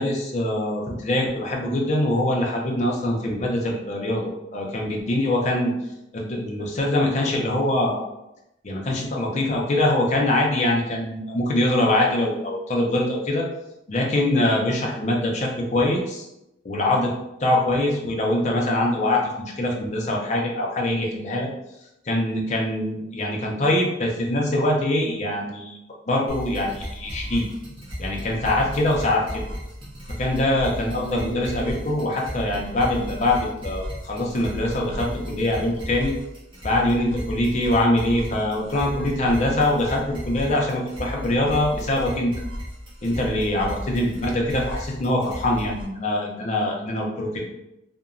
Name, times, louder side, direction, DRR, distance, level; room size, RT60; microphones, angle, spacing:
voice 1, 0.0-5.7 6.1-8.0 8.6-13.5 13.9-16.3 16.6-17.1 17.4-21.5 22.1-25.8 26.1-27.5 28.0-29.4 30.2-36.1 36.6-42.3 43.0-47.5, left 1 dB, 40° left, -1 dB, 0.5 m, -23 dB
sound 1, 26.3-45.8, equal, 30° right, 0.8 m, -35 dB
2.8 x 2.1 x 2.5 m, 0.87 s
head